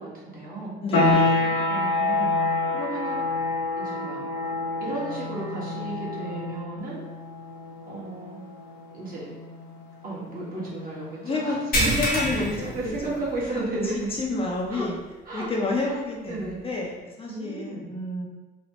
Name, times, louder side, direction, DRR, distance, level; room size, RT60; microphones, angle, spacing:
voice 1, 0.0-0.8 1.7-3.4 3.8-4.2 4.8-7.0 7.9-8.4 8.9-9.3 10.0-12.0 12.3-14.1 14.7-14.9 15.2-15.5 15.8-16.0 16.3-16.6 17.3-17.9, right 2 dB, 50° right, -6 dB, 1.3 m, -34 dB
voice 2, 0.8-1.6 11.2-11.6 12.0-12.9 13.9-15.0 15.3-18.3, left 2 dB, 30° left, -2 dB, 0.6 m, -30 dB
sound 1, 0.9-11.4, left 2 dB, 80° left, 0.7 m, -28 dB
sound 2, 11.7-13.6 14.0-14.2 14.6-14.7 16.4-16.5, equal, 50° left, 0.9 m, -26 dB
3.1 x 2.1 x 2.8 m, 1.1 s
supercardioid pair, 80°, 19 cm